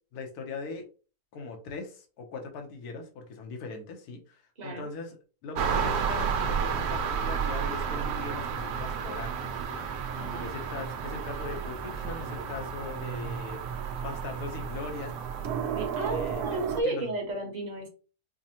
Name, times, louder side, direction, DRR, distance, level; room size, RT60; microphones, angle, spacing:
voice 1, 0.1-0.9 1.3-9.8 10.4-13.6 14.0-15.2 16.1-17.1, left 3 dB, 75° left, 3 dB, 1.3 m, -40 dB
sound 1, 5.6-16.8, right 7 dB, 80° right, 1.1 m, -32 dB
voice 2, 10.2-10.5 15.7-17.9, right 2 dB, 30° right, -1 dB, 1.1 m, -33 dB
5.1 x 2.1 x 2.8 m, 0.36 s
omnidirectional pair, 1.6 m